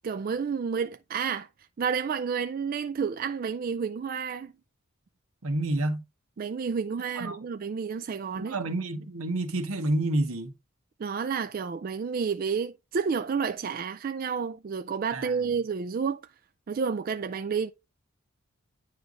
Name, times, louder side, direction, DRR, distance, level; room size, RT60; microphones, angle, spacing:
voice 1, 0.0-1.5 1.8-4.5 6.4-8.6 11.0-16.2 16.7-17.7, right 6 dB, 40° right, 0.3 m, -30 dB
voice 2, 5.4-6.0 7.1-7.4 8.4-10.5 15.1-15.3, right 1 dB, 80° right, 1.1 m, -29 dB
9.5 x 3.3 x 3.8 m
head